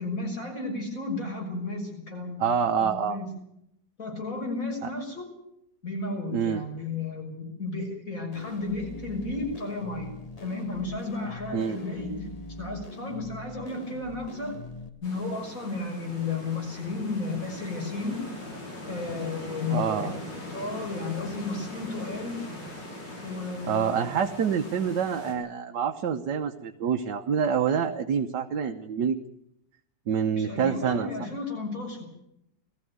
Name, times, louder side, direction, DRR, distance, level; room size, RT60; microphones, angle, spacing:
voice 1, 0.0-2.4 2.8-3.3 4.0-5.3 5.8-12.3 12.6-14.5 15.0-18.2 18.9-20.1 20.5-22.4 23.2-24.2 30.3-32.0, left 3 dB, 50° left, 2 dB, 6.7 m, -33 dB
voice 2, 2.4-3.2 4.8-4.9 6.3-6.6 11.5-11.8 19.7-20.1 23.6-29.2 30.1-31.1, right 7 dB, 75° right, 4 dB, 1.7 m, -27 dB
sound 1, 8.3-14.9, left 3 dB, 20° left, 1.5 m, -42 dB
sound 2, 15.0-25.3, left 2 dB, 85° left, 6.3 m, -41 dB
19.5 x 15.0 x 9.5 m, 0.79 s
omnidirectional pair, 1.9 m